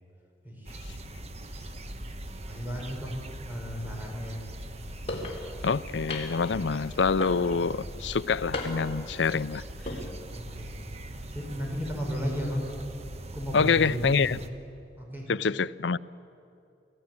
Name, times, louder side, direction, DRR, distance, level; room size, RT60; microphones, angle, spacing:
voice 1, 0.4-0.9 1.4-1.9 2.5-4.5 10.3-10.8 11.1-12.6 13.3-14.5 15.0-15.3, equal, 10° right, 6.2 m, -35 dB
sound 1, 0.6-14.5, right 1 dB, 35° right, 1.2 m, -41 dB
sound 2, 5.1-5.4 6.1-6.5 7.2-7.7 8.5-9.0 9.7-10.0, left 2 dB, 35° left, 4.0 m, -34 dB
voice 2, 5.6-9.7 13.5-14.4 15.3-16.0, left 5 dB, 85° left, 0.5 m, -26 dB
27.5 x 17.0 x 9.8 m
head